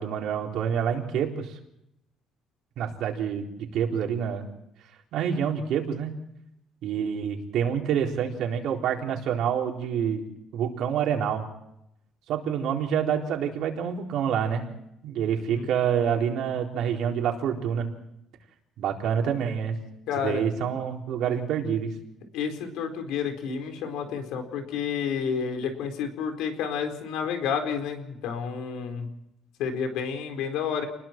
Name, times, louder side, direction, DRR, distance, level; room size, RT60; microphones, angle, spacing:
voice 1, 0.0-1.6 2.8-4.5 5.1-6.1 6.8-10.2 10.5-11.5 12.3-14.6 15.0-17.9 18.8-19.8 20.2-21.9, right 8 dB, 65° right, 1 dB, 4.0 m, -27 dB
voice 2, 20.1-20.4 22.3-29.1 29.6-30.9, left 7 dB, 90° left, 5 dB, 4.5 m, -30 dB
29.5 x 21.0 x 4.6 m, 0.81 s
cardioid pair, 165°, 0 cm